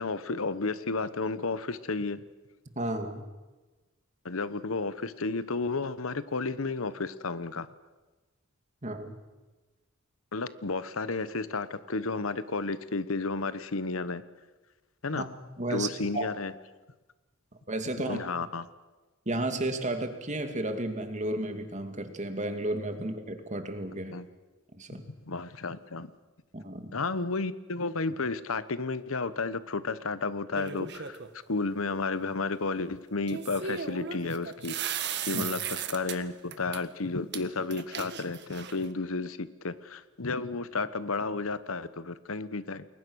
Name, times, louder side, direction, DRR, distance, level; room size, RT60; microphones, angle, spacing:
voice 1, 0.0-2.2 4.2-7.7 10.3-14.2 15.0-15.3 15.7-16.5 18.1-18.7 24.1-24.3 24.9-26.1 26.9-31.2 31.5-42.8, left 3 dB, 90° left, 14 dB, 1.1 m, -32 dB
voice 2, 2.8-3.2 8.8-9.2 15.1-15.3 15.6-16.3 17.7-18.2 19.3-24.1 24.8-25.0 26.5-26.9 35.3-35.5, right 1 dB, 35° right, 6 dB, 2.4 m, -33 dB
sound 1, 30.5-31.3 33.3-36.2 36.5-36.8 37.3-37.4 37.7-38.9, right 8 dB, 55° right, 1.6 m, -36 dB
30.0 x 21.5 x 6.4 m, 1.2 s
head